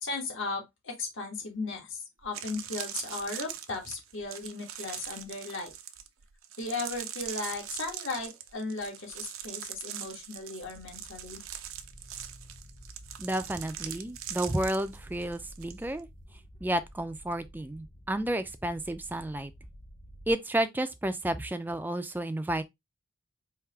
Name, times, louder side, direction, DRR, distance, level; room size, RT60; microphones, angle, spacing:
voice 1, 0.0-5.7 6.6-11.4, left 3 dB, 65° left, 1.5 m, -36 dB
sound 1, 1.7-1.8 2.2-15.7 16.0-16.3, right 10 dB, 85° right, 0.7 m, -41 dB
sound 2, 10.6-20.3, equal, 25° left, 0.8 m, -51 dB
voice 2, 13.2-16.1 16.6-19.5 20.3-22.6, right 1 dB, 10° right, 0.4 m, -31 dB
4.6 x 2.8 x 3.4 m
head